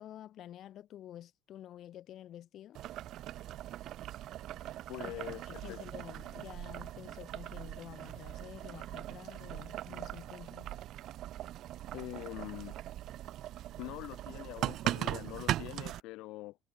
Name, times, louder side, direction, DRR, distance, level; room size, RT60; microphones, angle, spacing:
voice 1, 0.0-2.8 5.0-10.7, left 11 dB, 50° left, 3.4 m, -50 dB
Boiling, 2.7-16.0, right 13 dB, 55° right, 1.4 m, -40 dB
voice 2, 4.9-5.8 11.9-12.7 13.8-16.6, left 19 dB, 75° left, 2.8 m, -44 dB
cardioid pair, 135°, 0 cm